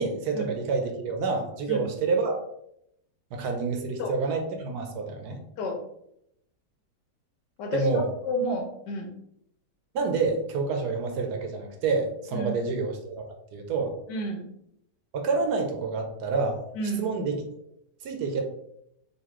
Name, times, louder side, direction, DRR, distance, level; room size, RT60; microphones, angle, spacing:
voice 1, 0.0-2.4 3.3-5.4 7.7-8.1 9.9-13.2 13.5-13.9 15.1-16.6 17.0-17.4 18.0-18.4, right 4 dB, 75° right, 3 dB, 1.2 m, -28 dB
voice 2, 7.6-9.1 12.3-12.5 14.1-14.5 16.7-17.1, equal, 80° left, 3 dB, 1.4 m, -30 dB
4.1 x 2.7 x 2.9 m, 0.76 s
omnidirectional pair, 1.8 m